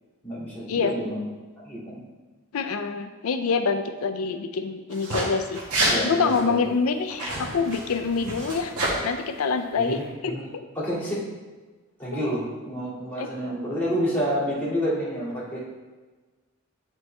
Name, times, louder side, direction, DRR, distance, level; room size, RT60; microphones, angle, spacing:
voice 1, 0.2-1.2 1.6-2.0 5.9-6.7 9.8-10.4 10.8-11.2 12.0-15.6, equal, 10° left, -9 dB, 2.1 m, -29 dB
voice 2, 2.5-8.7 9.0-10.3 12.1-12.2 13.2-13.3, left 5 dB, 75° left, 7 dB, 0.5 m, -26 dB
sound 1, 4.9-5.2 5.5-6.0 6.3-6.4 7.1-8.9, right 1 dB, 90° right, 1.6 m, -28 dB
8.2 x 4.5 x 3.3 m, 1.3 s
head